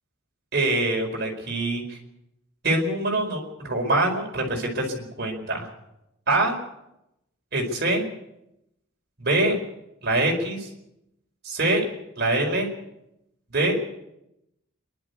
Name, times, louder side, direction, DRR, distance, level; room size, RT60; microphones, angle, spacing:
voice 1, 0.5-2.0 2.6-5.7 6.3-6.6 7.5-8.1 9.2-9.6 10.0-10.7 11.4-11.8 12.2-12.7 13.5-13.8, right 2 dB, 50° right, 2 dB, 4.8 m, -24 dB
26.5 x 12.0 x 8.3 m, 0.86 s
head